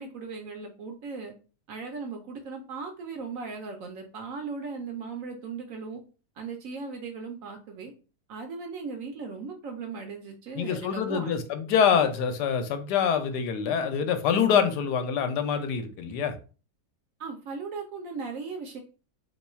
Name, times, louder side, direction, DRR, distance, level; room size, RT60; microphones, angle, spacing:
voice 1, 0.0-1.3 1.7-6.0 6.4-7.9 8.3-11.4 17.2-18.8, right 4 dB, 65° right, 3 dB, 0.9 m, -37 dB
voice 2, 10.6-16.4, left 7 dB, 80° left, 8 dB, 1.2 m, -25 dB
2.9 x 2.3 x 4.2 m, 0.36 s
omnidirectional pair, 1.8 m